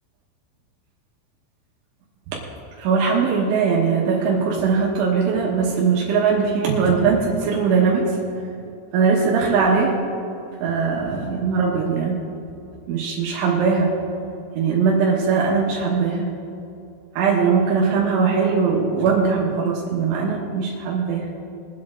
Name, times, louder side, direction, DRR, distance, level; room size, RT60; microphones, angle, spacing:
voice 1, 2.8-8.2 8.9-9.9 10.6-12.2 12.9-13.9 14.6-16.3 17.2-21.3, right 5 dB, 85° right, -3 dB, 3.7 m, -20 dB
22.5 x 8.6 x 3.7 m, 2.6 s
omnidirectional pair, 5.5 m